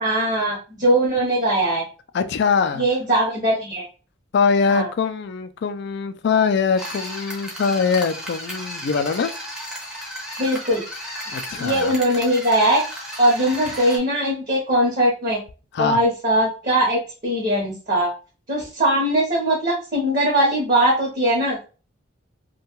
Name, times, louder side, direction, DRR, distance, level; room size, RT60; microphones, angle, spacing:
voice 1, 0.0-1.8 2.7-3.8 4.7-4.9 10.4-10.8 11.6-12.8 13.2-15.4 15.8-18.1 18.5-21.7, right 1 dB, 40° right, -4 dB, 0.8 m, -20 dB
voice 2, 2.1-2.8 4.3-9.3 11.3-11.9 15.7-16.0, left 5 dB, 55° left, 11 dB, 0.3 m, -22 dB
sound 1, 6.8-14.0, equal, 5° right, 0.6 m, -34 dB
2.7 x 2.2 x 2.9 m, 0.34 s
head